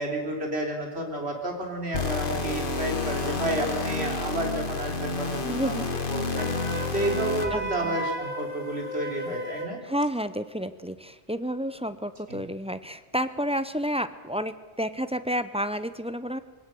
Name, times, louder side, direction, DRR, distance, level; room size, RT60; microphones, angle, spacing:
voice 1, 0.0-5.8 6.1-9.8 12.3-12.4, right 1 dB, 70° right, 1 dB, 3.8 m, -31 dB
sound 1, 1.9-7.7, left 3 dB, 55° left, 1.8 m, -30 dB
voice 2, 5.4-5.8 7.5-8.0 9.8-16.4, equal, 5° right, 12 dB, 0.7 m, -30 dB
Wind instrument woodwind instrument, 6.3-9.8, right 1 dB, 30° left, 2.1 m, -34 dB
21.5 x 17.5 x 7.8 m, 1.4 s
omnidirectional pair, 1.1 m